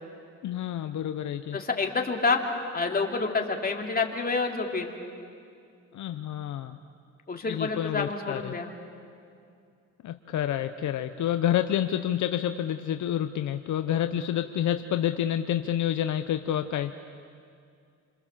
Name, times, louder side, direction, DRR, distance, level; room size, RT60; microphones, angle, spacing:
voice 1, 0.4-1.6 5.9-6.8 7.5-8.5 10.0-16.9, left 10 dB, 70° left, 8 dB, 0.9 m, -28 dB
voice 2, 1.5-2.4 2.7-4.9 7.3-8.7, left 4 dB, 30° left, 2 dB, 3.1 m, -28 dB
28.0 x 26.0 x 7.5 m, 2.4 s
cardioid pair, 90°, 30 cm